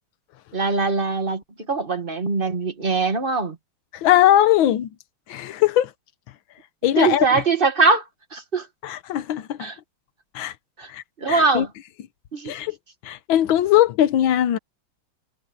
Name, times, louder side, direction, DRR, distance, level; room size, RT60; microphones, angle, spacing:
voice 1, 0.5-3.6 7.0-8.0 8.3-8.7 9.6-9.8 10.8-10.9 11.2-11.7 12.3-12.6, right 4 dB, 30° right, 1.8 m, -22 dB
voice 2, 3.9-4.9 5.3-5.9 6.8-7.3 8.8-9.7 10.3-10.5 10.9-11.6 12.4-12.8 13.0-14.6, left 12 dB, 85° left, 1.6 m, -20 dB
omnidirectional pair, 2.1 m